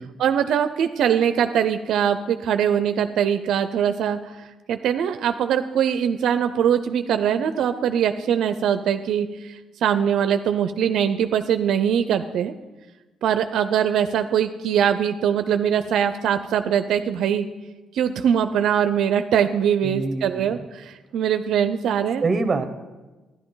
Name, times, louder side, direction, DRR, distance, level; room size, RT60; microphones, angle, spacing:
voice 1, 0.2-12.5 13.2-17.5 17.9-22.2, right 8 dB, 75° right, 9 dB, 0.4 m, -22 dB
voice 2, 19.8-20.6 22.2-22.6, right 3 dB, 30° right, 9 dB, 1.1 m, -25 dB
13.0 x 11.0 x 3.9 m, 1.2 s
cardioid pair, 90°, 0 cm